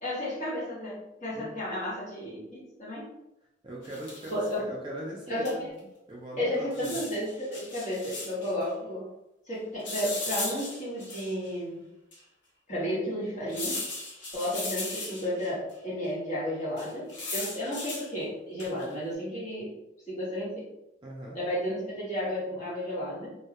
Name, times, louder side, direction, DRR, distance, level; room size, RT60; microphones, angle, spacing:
voice 1, 0.0-3.1 4.3-4.6 5.3-5.7 6.4-9.1 9.5-11.9 12.7-13.9 14.3-19.7 20.1-20.7 21.3-23.3, equal, 40° left, -8 dB, 1.1 m, -33 dB
voice 2, 3.6-5.7 6.1-7.0 21.0-21.4, right 1 dB, 25° right, -2 dB, 0.3 m, -41 dB
sound 1, 3.8-4.4 5.5-5.6 5.8-5.9 6.7-8.5 9.8-11.5 12.1-12.2 13.5-15.5 16.8-18.1 18.6-18.9, left 2 dB, 70° left, 0.6 m, -37 dB
2.2 x 2.0 x 2.7 m, 0.89 s
head